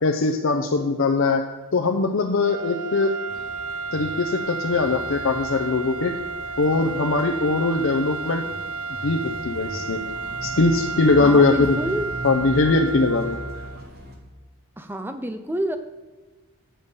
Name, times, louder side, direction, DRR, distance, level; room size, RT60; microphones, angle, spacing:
voice 1, 0.0-1.4 1.7-3.2 3.9-6.1 6.6-8.4 9.0-10.1 10.4-11.8 12.2-13.4, left 3 dB, 60° left, 3 dB, 0.6 m, -21 dB
sound 1, 2.4-13.9, right 4 dB, 85° right, 0.4 m, -32 dB
sound 2, 3.3-14.2, right 1 dB, 45° right, 1.4 m, -39 dB
voice 2, 11.2-12.1 14.8-15.8, right 1 dB, 10° right, 8 dB, 0.5 m, -28 dB
8.8 x 6.7 x 5.4 m, 1.3 s
head